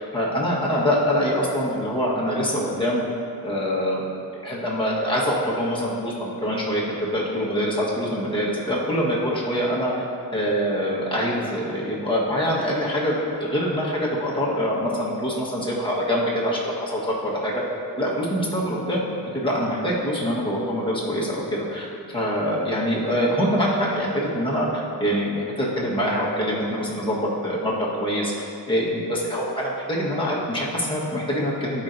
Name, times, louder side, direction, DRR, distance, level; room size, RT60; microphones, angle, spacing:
voice 1, 0.0-3.0 3.4-4.0 4.4-9.9 10.3-17.6 18.0-19.0 19.3-24.1 24.3-28.3 28.7-31.8, equal, 15° left, -6 dB, 1.5 m, -24 dB
11.5 x 4.5 x 2.7 m, 2.5 s
wide cardioid pair, 115°, 36 cm